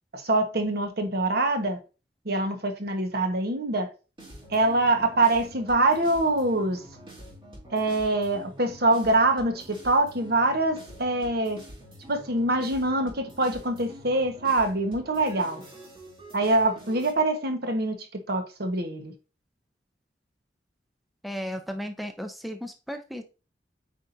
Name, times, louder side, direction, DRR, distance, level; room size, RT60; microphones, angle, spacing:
voice 1, 0.1-1.8 2.2-3.9 4.5-6.8 7.7-11.6 12.1-15.6 16.3-18.0 18.3-19.1, right 2 dB, 60° right, 1.3 m, -24 dB
sound 1, 4.2-17.1, equal, 30° right, 3.2 m, -46 dB
voice 2, 21.2-23.2, equal, ahead, 0.6 m, -35 dB
8.5 x 4.9 x 2.7 m
head